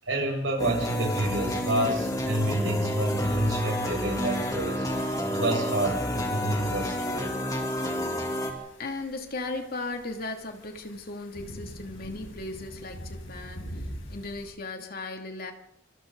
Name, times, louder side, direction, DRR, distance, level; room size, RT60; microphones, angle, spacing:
voice 1, 0.0-7.3 12.8-12.9, right 1 dB, 75° right, 0 dB, 7.8 m, -29 dB
sound 1, 0.6-8.5, equal, 20° left, 3.1 m, -30 dB
sound 2, 1.1-14.5, equal, 90° left, 7.4 m, -46 dB
voice 2, 8.8-13.7 14.1-15.5, left 2 dB, 50° left, 4 dB, 2.7 m, -36 dB
28.0 x 25.5 x 4.0 m, 0.79 s
head